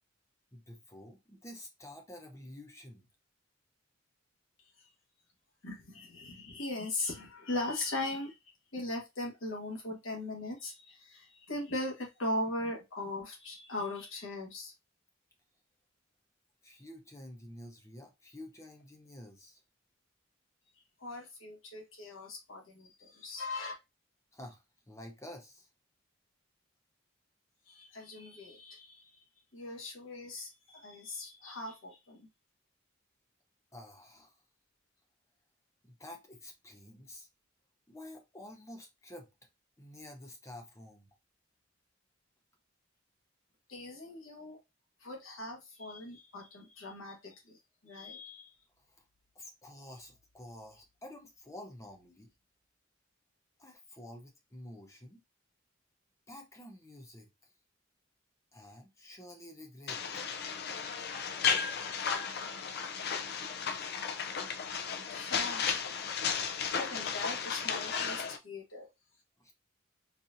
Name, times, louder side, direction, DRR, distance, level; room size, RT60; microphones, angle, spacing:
voice 1, 0.5-3.0 16.6-19.6 24.3-25.7 33.7-34.4 35.8-37.3 37.9-39.3 39.8-41.1 48.8-49.0 49.3-52.3 53.6-55.2 56.3-57.3 58.5-60.0 69.4-69.5, left 1 dB, 15° left, 0.7 m, -50 dB
voice 2, 5.6-8.4 8.7-14.7 21.0-23.7 27.7-29.1 29.5-32.3 43.7-44.6 45.0-47.6 47.8-48.5 65.1-65.8 66.7-68.9, left 2 dB, 80° left, 1.4 m, -39 dB
sound 1, 59.9-68.4, left 6 dB, 55° left, 0.5 m, -34 dB
4.1 x 2.7 x 2.6 m
head